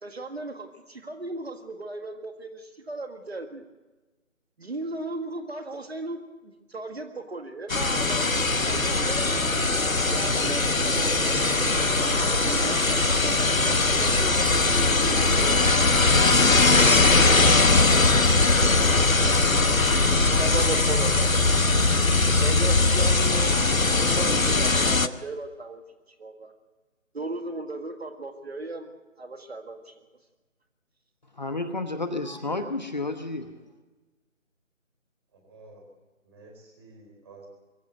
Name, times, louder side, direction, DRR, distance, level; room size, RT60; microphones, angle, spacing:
voice 1, 0.0-3.6 4.6-8.2 8.6-9.4 9.8-11.5 12.1-15.7 16.5-18.8 20.0-21.3 22.4-23.7 24.0-25.8 26.2-26.5 27.1-28.9 29.2-29.9, right 2 dB, 50° right, 6 dB, 1.9 m, -36 dB
sound 1, 7.7-25.1, left 3 dB, 80° left, 1.2 m, -21 dB
sound 2, 7.9-22.5, right 1 dB, 85° right, 4.0 m, -32 dB
voice 2, 31.3-33.5, left 2 dB, 35° left, 8 dB, 1.1 m, -31 dB
voice 3, 35.4-35.8 36.2-37.5, right 3 dB, 20° right, 1 dB, 4.4 m, -50 dB
23.5 x 15.5 x 8.2 m, 1.2 s
figure-of-eight pair, 155°, 40 cm